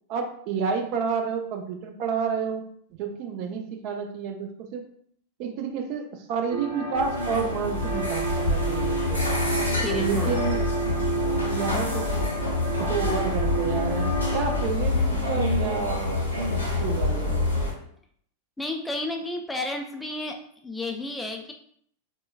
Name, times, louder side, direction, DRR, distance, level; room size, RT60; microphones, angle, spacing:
voice 1, 0.1-2.6 3.0-4.8 5.4-9.2 10.0-10.6 11.5-12.3 12.8-16.1 16.4-17.5, right 6 dB, 45° right, 4 dB, 0.5 m, -30 dB
sound 1, 6.5-14.7, right 3 dB, 60° right, 0.9 m, -31 dB
sound 2, 6.9-17.7, left 2 dB, 90° left, 0.9 m, -27 dB
voice 2, 9.6-10.4 18.6-20.4 20.6-21.5, left 2 dB, 10° left, 2 dB, 0.3 m, -32 dB
4.5 x 2.2 x 2.3 m, 0.64 s
figure-of-eight pair, 90°, 0 cm